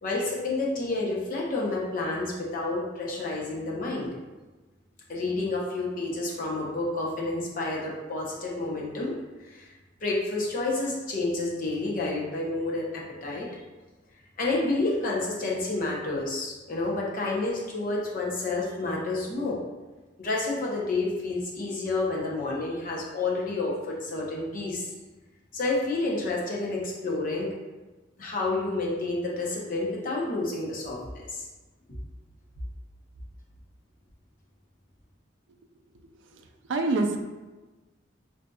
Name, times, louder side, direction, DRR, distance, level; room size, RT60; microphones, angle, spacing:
voice 1, 0.0-4.1 5.1-9.1 9.4-9.7 10.0-13.5 14.4-19.6 20.2-24.9 25.5-27.5 28.2-31.5, left 2 dB, 45° left, -3 dB, 0.7 m, -29 dB
voice 2, 36.3-37.2, right 2 dB, 85° right, 4 dB, 0.4 m, -27 dB
5.0 x 2.6 x 2.2 m, 1.2 s
head